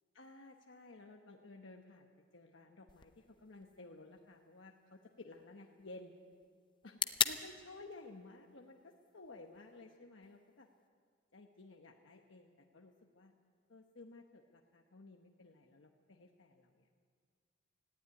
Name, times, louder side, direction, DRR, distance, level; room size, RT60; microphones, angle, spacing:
voice 1, 0.1-6.1 6.8-10.7 11.3-13.3 13.7-17.0, left 2 dB, 70° left, 2 dB, 1.1 m, -55 dB
sound 1, 2.9-10.9, left 7 dB, 25° left, 0.6 m, -43 dB
18.5 x 15.5 x 9.5 m, 2.1 s
head